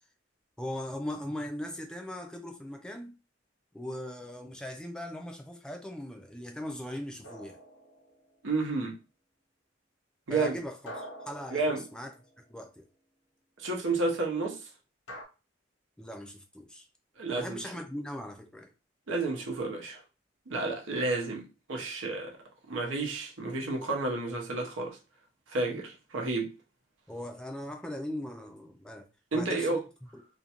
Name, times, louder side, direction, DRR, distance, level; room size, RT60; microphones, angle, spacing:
voice 1, 0.6-3.2 3.7-7.6 10.3-12.1 12.5-12.9 16.0-16.9 17.3-18.7 27.1-29.1 29.3-29.8 30.1-30.2, left 1 dB, 5° left, 0.3 m, -39 dB
sound 1, 7.2-8.4 10.9-12.5 15.1-15.2, equal, 90° left, 0.9 m, -46 dB
voice 2, 8.4-9.0 10.3-10.6 11.5-11.8 13.6-14.6 17.2-17.6 19.1-20.0 20.5-21.4 21.7-22.3 22.7-25.0 25.5-26.5 29.3-29.8, right 3 dB, 85° right, 0.7 m, -31 dB
2.5 x 2.1 x 2.8 m
head